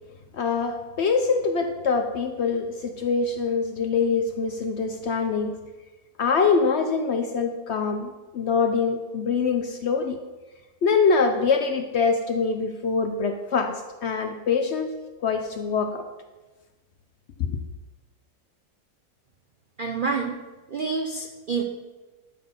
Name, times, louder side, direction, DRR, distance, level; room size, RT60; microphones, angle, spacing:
voice 1, 0.3-5.6 6.2-10.2 10.8-14.9 15.2-16.0 17.5-17.6, left 5 dB, 60° left, 6 dB, 0.7 m, -24 dB
voice 2, 19.8-20.4 20.7-21.6, right 5 dB, 60° right, 3 dB, 0.5 m, -27 dB
12.0 x 4.1 x 5.4 m, 1.2 s
omnidirectional pair, 1.6 m